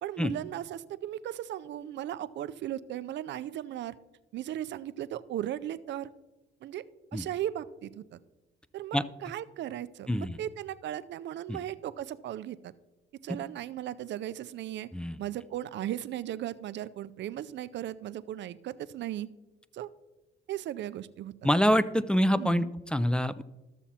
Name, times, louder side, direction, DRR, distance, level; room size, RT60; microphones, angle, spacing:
voice 1, 0.0-4.0 4.3-6.1 6.6-6.8 7.1-8.0 8.7-12.7 13.2-14.9 15.2-19.3 19.7-19.9 20.5-21.3 22.4-22.7, right 12 dB, 65° right, 15 dB, 0.4 m, -37 dB
voice 2, 10.1-10.4 11.5-11.6 14.9-15.2 21.4-23.4, equal, 5° left, 15 dB, 0.3 m, -26 dB
13.5 x 7.1 x 2.8 m, 1.1 s
cardioid pair, 90°, 20 cm